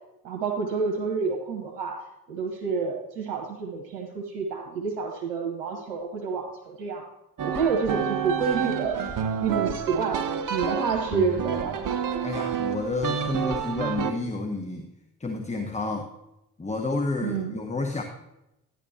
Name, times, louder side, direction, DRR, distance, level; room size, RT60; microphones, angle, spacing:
voice 1, 0.2-2.0 2.3-7.0 7.4-10.2 10.5-11.8 17.2-17.6, right 5 dB, 70° right, 0 dB, 1.3 m, -29 dB
sound 1, 7.4-14.1, right 7 dB, 40° right, 1.0 m, -29 dB
voice 2, 12.2-14.9 15.2-16.1 16.6-18.0, left 3 dB, 15° left, 4 dB, 1.1 m, -30 dB
12.5 x 10.0 x 2.9 m, 0.90 s
figure-of-eight pair, 45°, 47 cm